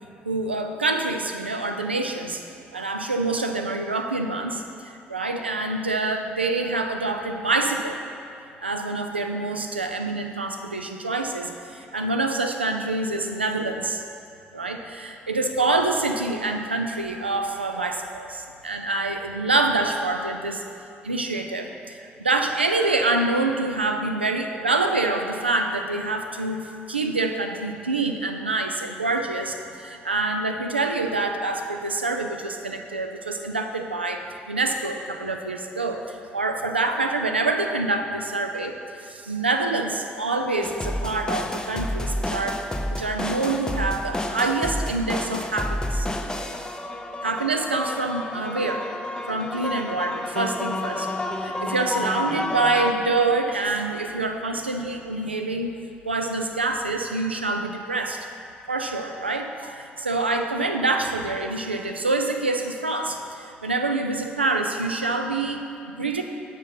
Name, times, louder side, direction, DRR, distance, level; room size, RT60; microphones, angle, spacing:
voice 1, 0.2-2.4 2.7-8.0 8.6-14.0 14.5-20.6 21.0-42.6 42.9-46.1 47.2-48.9 49.3-51.1 51.4-55.7 56.0-58.3 58.7-66.2, right 2 dB, 85° right, 4 dB, 0.3 m, -26 dB
sound 1, 40.6-52.9, left 1 dB, 15° left, 0.5 m, -30 dB
6.2 x 5.4 x 5.5 m, 2.6 s
figure-of-eight pair, 50°, 6 cm